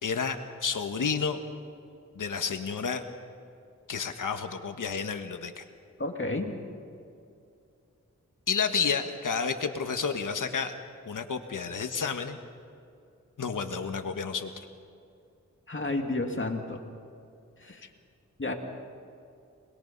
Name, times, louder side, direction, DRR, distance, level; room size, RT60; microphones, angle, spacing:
voice 1, 0.0-1.4 2.2-3.0 3.9-5.6 8.5-10.7 11.1-12.4 13.4-14.5, left 5 dB, 90° left, 7 dB, 1.5 m, -30 dB
voice 2, 6.0-6.5 15.7-16.8 17.6-17.9 18.4-18.5, left 2 dB, 40° left, 3 dB, 2.5 m, -31 dB
26.0 x 21.0 x 5.4 m, 2.5 s
cardioid pair, 55°, 31 cm